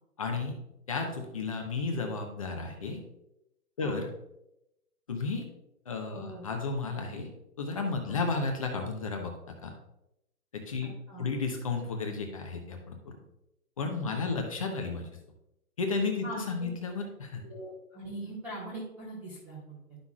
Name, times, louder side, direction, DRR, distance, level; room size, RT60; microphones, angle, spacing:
voice 1, 0.2-0.6 0.9-3.0 3.8-4.1 5.1-5.4 5.9-7.3 7.6-9.3 9.6-9.7 10.5-10.9 11.2-13.2 13.8-15.1 15.8-17.4, left 4 dB, 20° left, 3 dB, 0.7 m, -33 dB
voice 2, 6.1-6.5 8.1-8.2 10.8-11.3 14.0-14.4 16.2-16.7 17.4-20.0, right 1 dB, 5° right, -8 dB, 0.9 m, -42 dB
11.5 x 5.8 x 2.4 m, 0.86 s
hypercardioid pair, 160°, 47 cm